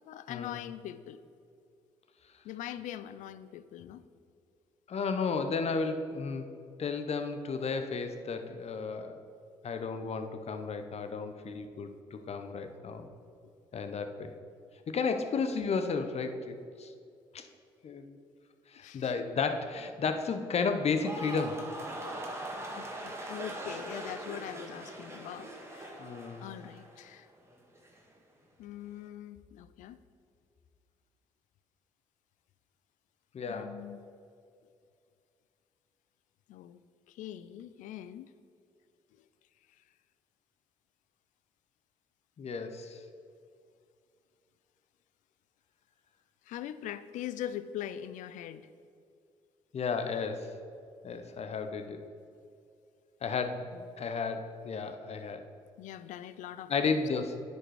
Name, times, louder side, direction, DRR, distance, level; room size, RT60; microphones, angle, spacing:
voice 1, 0.0-1.2 2.4-4.0 18.8-19.1 22.6-26.1 26.4-27.3 28.6-30.0 33.5-34.0 36.5-38.3 39.8-39.9 46.4-48.7 53.7-53.9 55.8-56.9, left 11 dB, 70° left, 14 dB, 0.4 m, -42 dB
voice 2, 4.9-6.5 6.8-9.2 9.6-13.1 13.7-14.3 14.9-16.9 17.3-17.4 17.8-18.2 18.7-21.6 26.0-26.4 33.3-33.8 42.4-43.0 49.7-50.5 51.0-52.0 53.2-53.7 54.0-55.5 56.7-57.4, left 5 dB, 50° left, 7 dB, 0.8 m, -33 dB
sound 1, 20.8-27.2 27.5-28.0, right 1 dB, 20° right, 1.8 m, -41 dB
9.7 x 5.4 x 4.8 m, 2.4 s
hypercardioid pair, 50°, 13 cm